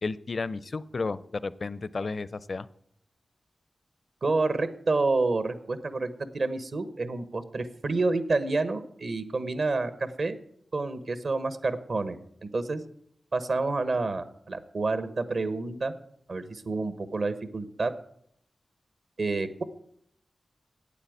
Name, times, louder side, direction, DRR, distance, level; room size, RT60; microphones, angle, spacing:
voice 1, 0.0-2.7, left 3 dB, 55° left, 17 dB, 0.5 m, -32 dB
voice 2, 4.2-10.4 10.7-12.8 13.3-15.9 16.3-17.9 19.2-19.6, right 3 dB, 65° right, 12 dB, 1.0 m, -29 dB
8.7 x 8.5 x 9.2 m, 0.70 s
wide cardioid pair, 80°, 0 cm